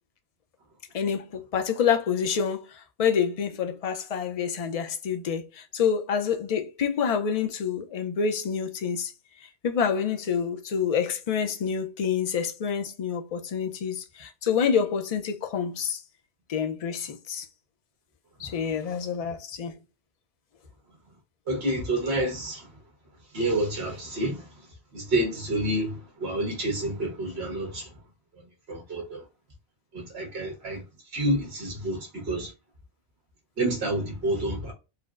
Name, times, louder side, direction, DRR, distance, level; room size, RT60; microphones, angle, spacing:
voice 1, 0.9-2.7 3.0-9.1 9.6-16.0 16.5-17.4 18.4-19.8, left 7 dB, 65° left, 0.3 m, -27 dB
voice 2, 21.5-22.7 23.3-24.5 24.9-27.9 28.3-28.4 28.7-29.2 29.9-30.8 31.1-32.5 33.6-34.7, right 1 dB, 60° right, 1.4 m, -29 dB
4.1 x 2.0 x 2.3 m
omnidirectional pair, 1.2 m